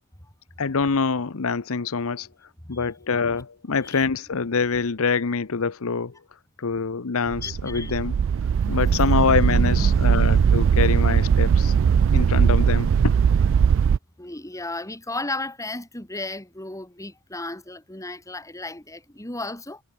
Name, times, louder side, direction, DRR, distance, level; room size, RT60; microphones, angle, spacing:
voice 1, 0.6-2.3 2.7-6.1 6.6-8.1 8.7-11.7 12.1-13.1, left 5 dB, 65° left, 0.8 m, -25 dB
sound 1, 7.3-14.0, right 7 dB, 60° right, 0.3 m, -19 dB
voice 2, 7.4-8.0 8.5-10.4 10.7-10.9 14.2-19.8, left 2 dB, 15° left, 3.2 m, -35 dB
head